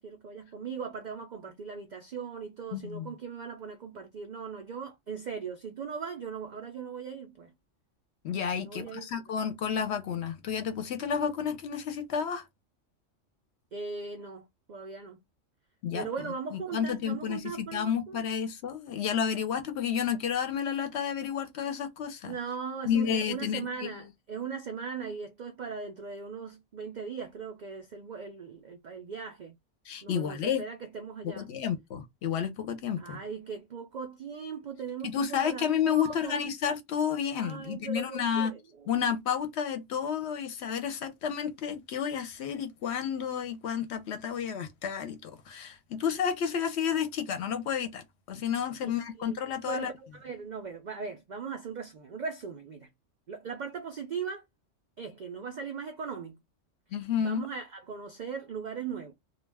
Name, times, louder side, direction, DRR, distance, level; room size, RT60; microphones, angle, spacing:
voice 1, 0.0-7.5 8.6-9.1 13.7-15.2 15.9-18.2 22.2-29.5 30.0-31.5 33.0-36.4 37.4-38.6 48.8-49.4 49.7-52.9 53.3-54.4 55.0-56.4 57.2-59.1, right 6 dB, 70° right, 0.4 m, -39 dB
voice 2, 2.7-3.1 8.2-12.4 15.8-16.1 16.5-22.4 22.9-23.9 29.9-30.6 31.2-33.2 35.0-38.5 38.9-49.9 56.9-57.5, left 8 dB, 65° left, 0.8 m, -31 dB
2.3 x 2.2 x 3.2 m
omnidirectional pair, 1.3 m